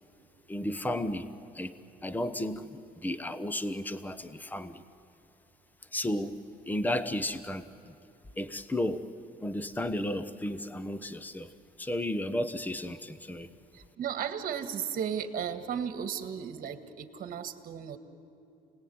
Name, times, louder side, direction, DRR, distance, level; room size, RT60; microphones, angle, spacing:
voice 1, 0.5-1.3 1.5-1.8 2.0-4.8 5.9-6.4 6.7-7.9 8.4-9.1 9.4-11.5 11.8-13.5, left 1 dB, 10° left, 12 dB, 1.0 m, -33 dB
voice 2, 13.7-18.0, right 8 dB, 55° right, 8 dB, 1.9 m, -35 dB
28.5 x 19.5 x 9.5 m, 2.8 s
cardioid pair, 110°, 17 cm